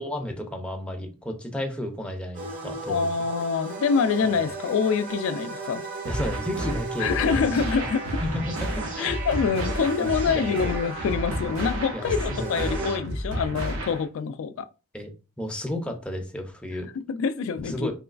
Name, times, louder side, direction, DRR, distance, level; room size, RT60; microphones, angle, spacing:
voice 1, 0.0-3.1 6.0-7.9 8.2-9.2 9.6-10.7 11.9-12.5 12.9-13.0 14.9-15.1 15.4-16.9 17.6-17.9, left 1 dB, 5° left, 0.5 m, -33 dB
sound 1, 2.3-13.0, right 3 dB, 40° right, 0.7 m, -36 dB
voice 2, 2.9-5.8 7.0-8.2 9.0-14.7 16.8-17.9, left 5 dB, 65° left, 0.3 m, -26 dB
sound 2, 6.0-14.0, equal, 70° right, 0.9 m, -31 dB
3.0 x 3.0 x 2.4 m
head